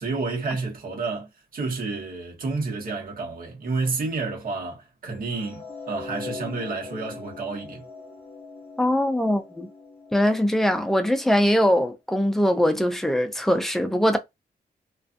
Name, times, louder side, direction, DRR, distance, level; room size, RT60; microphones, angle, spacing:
voice 1, 0.0-7.9, right 3 dB, 60° right, 1.1 m, -30 dB
sound 1, 5.3-11.6, left 4 dB, 35° left, 0.9 m, -41 dB
voice 2, 8.8-9.7 10.1-14.2, equal, ahead, 0.5 m, -22 dB
2.4 x 2.4 x 2.5 m
wide cardioid pair, 115°, 17 cm